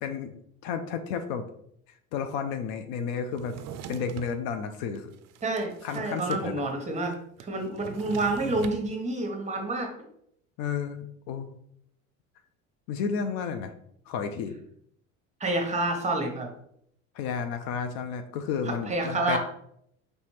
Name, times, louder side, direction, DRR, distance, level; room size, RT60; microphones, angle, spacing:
voice 1, 0.0-0.4 0.6-1.4 2.1-3.6 3.9-5.1 5.8-6.6 10.6-11.6 12.9-13.7 14.1-14.6 17.1-19.4, left 6 dB, 60° left, 7 dB, 0.6 m, -32 dB
Drawer open or close, 3.3-4.4 5.0-6.5 6.7-6.8 7.0-8.8, right 9 dB, 45° right, 0.4 m, -42 dB
voice 2, 5.4-7.2 7.4-9.9 15.4-16.5 18.8-19.4, right 2 dB, 15° right, 2 dB, 1.1 m, -28 dB
4.1 x 3.4 x 3.1 m, 0.70 s
hypercardioid pair, 80°, 40 cm